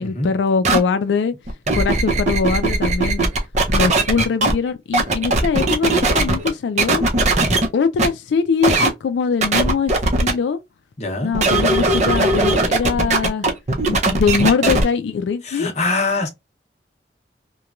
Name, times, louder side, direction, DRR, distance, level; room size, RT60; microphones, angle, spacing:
voice 1, 0.0-1.3 1.7-3.3 3.7-7.0 7.7-10.6 11.2-13.5 13.9-15.7, left 5 dB, 90° left, 0.3 m, -22 dB
sound 1, 0.6-0.8 1.5-4.5 4.9-6.5 6.8-7.7 8.0-8.1 8.6-8.9 9.4-10.3 11.3-14.8, right 2 dB, 40° right, 0.6 m, -18 dB
voice 2, 11.0-11.3 15.4-16.3, left 3 dB, 40° left, 0.8 m, -23 dB
2.9 x 2.2 x 2.3 m
head